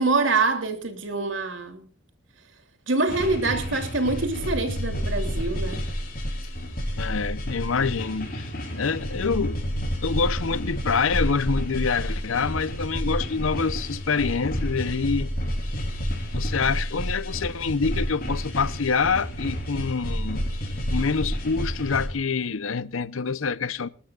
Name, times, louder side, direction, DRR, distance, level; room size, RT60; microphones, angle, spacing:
voice 1, 0.0-1.9 2.9-5.8, right 3 dB, 75° right, 2.9 m, -25 dB
sound 1, 3.1-22.1, equal, 45° left, 5.1 m, -30 dB
voice 2, 7.0-9.6 10.0-15.3 16.3-20.4 20.9-23.9, left 5 dB, 90° left, 0.7 m, -26 dB
26.5 x 12.5 x 2.4 m
head